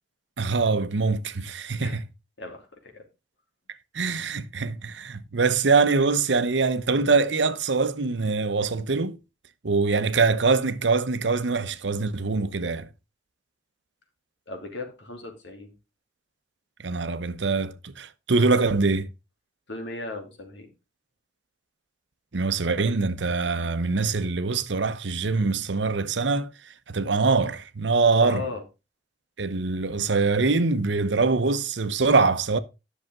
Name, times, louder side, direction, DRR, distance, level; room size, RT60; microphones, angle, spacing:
voice 1, 0.4-2.0 3.9-9.2 9.6-12.9 16.8-19.1 22.3-28.5 29.4-32.6, right 4 dB, 90° right, 0.9 m, -24 dB
voice 2, 2.4-3.0 14.5-15.7 19.7-20.7 28.2-28.6, left 2 dB, 90° left, 2.9 m, -37 dB
11.0 x 6.5 x 3.7 m
head